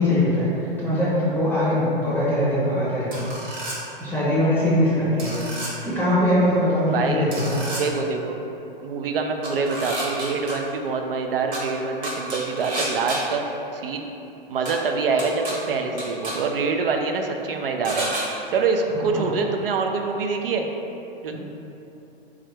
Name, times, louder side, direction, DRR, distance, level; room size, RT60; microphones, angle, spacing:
voice 1, 0.0-3.3 4.0-7.6 18.9-19.3 21.3-21.4, left 1 dB, 5° left, -11 dB, 0.7 m, -22 dB
sound 1, 3.1-3.8 5.2-5.7 7.3-7.8 9.4-10.5 11.5-11.6 12.0-13.2 14.7-14.8 15.2-15.5 16.0-16.3 17.8-18.2, right 1 dB, 30° right, 1.0 m, -30 dB
voice 2, 6.9-7.3 7.8-8.4 8.8-13.4 13.7-14.1 14.5-20.7 21.2-21.4, right 4 dB, 70° right, 3 dB, 0.5 m, -25 dB
3.2 x 2.4 x 4.3 m, 3.0 s
figure-of-eight pair, 110°, 29 cm